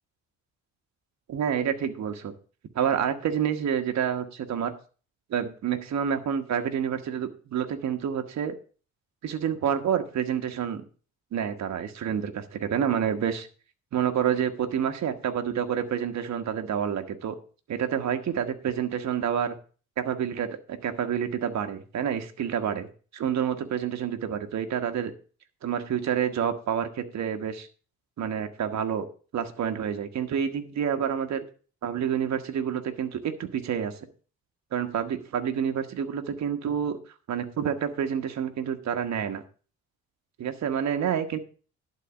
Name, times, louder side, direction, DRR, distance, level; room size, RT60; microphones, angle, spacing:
voice 1, 1.3-2.3 2.7-4.7 5.3-8.5 9.2-10.8 11.3-13.5 13.9-17.4 17.7-19.6 20.0-22.9 23.1-25.1 25.6-27.7 28.2-29.0 29.3-31.4 31.8-33.9 34.7-37.0 37.3-39.4 40.4-41.4, right 8 dB, 65° right, 7 dB, 1.3 m, -28 dB
11.5 x 4.2 x 7.0 m, 0.39 s
cardioid pair, 90°, 30 cm